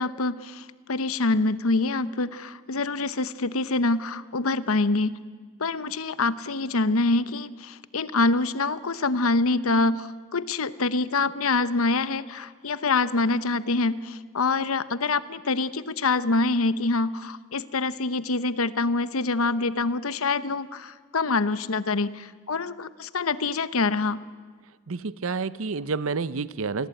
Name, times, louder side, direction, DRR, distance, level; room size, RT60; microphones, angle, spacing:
voice 1, 0.0-5.2 5.6-24.2, left 3 dB, 75° left, 15 dB, 0.9 m, -25 dB
voice 2, 24.9-26.9, right 4 dB, 70° right, 17 dB, 0.7 m, -29 dB
27.5 x 20.5 x 9.1 m, 1.5 s
head